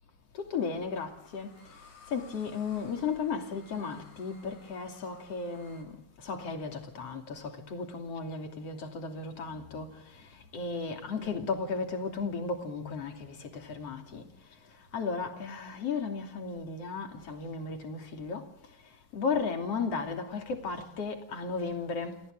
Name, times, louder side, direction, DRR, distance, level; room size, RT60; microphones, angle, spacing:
voice 1, 0.3-1.5 2.1-14.3 14.9-18.5 19.1-22.2, left 4 dB, 45° left, 3.7 m, -35 dB
sound 1, 0.6-5.8, left 3 dB, 70° left, 7.2 m, -57 dB
29.0 x 27.5 x 3.8 m
omnidirectional pair, 4.2 m